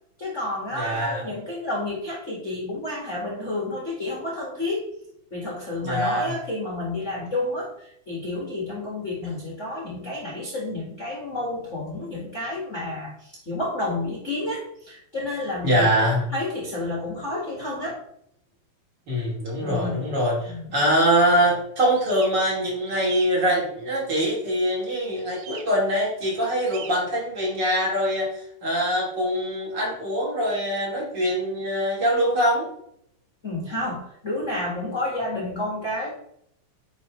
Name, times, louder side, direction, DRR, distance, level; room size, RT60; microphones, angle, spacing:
voice 1, 0.2-4.9 5.3-15.9 16.3-18.0 19.6-20.0 20.4-20.8 33.4-36.1, left 2 dB, 50° left, -4 dB, 0.8 m, -30 dB
voice 2, 0.8-1.2 5.8-6.3 15.6-16.3 19.1-32.7, equal, 30° right, -4 dB, 2.9 m, -23 dB
sound 1, 21.9-22.3 22.9-23.3 25.3-25.6 26.6-26.9, right 6 dB, 70° right, 2.1 m, -39 dB
9.9 x 4.7 x 3.1 m, 0.72 s
omnidirectional pair, 4.0 m